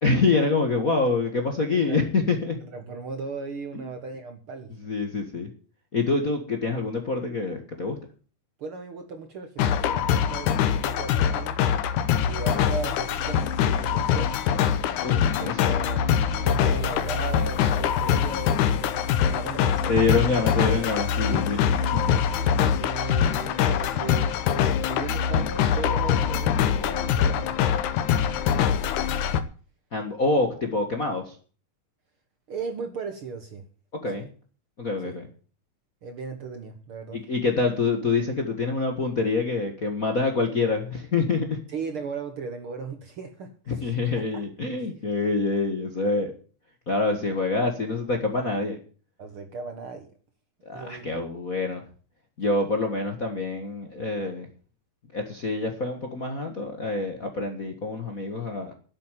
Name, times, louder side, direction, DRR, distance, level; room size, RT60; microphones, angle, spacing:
voice 1, 0.0-2.6 3.7-3.9 4.8-5.5 5.9-8.0 15.0-15.8 19.9-21.6 21.9-22.2 29.9-31.4 34.0-34.3 34.8-35.3 37.1-41.6 43.7-46.3 46.9-48.8 50.6-51.8 52.4-54.5 55.1-58.7, left 3 dB, 35° left, 4 dB, 1.4 m, -26 dB
voice 2, 2.6-4.7 8.6-10.0 10.3-11.6 12.2-14.3 15.3-20.0 21.2-21.6 22.4-27.6 28.2-29.1 32.5-33.6 34.1-34.3 35.0-35.2 36.0-37.2 41.7-44.4 49.2-50.1 50.7-51.2, right 4 dB, 55° right, 6 dB, 1.7 m, -37 dB
sound 1, 9.6-29.4, left 8 dB, 75° left, 2.4 m, -23 dB
11.0 x 8.4 x 9.0 m, 0.41 s
omnidirectional pair, 3.7 m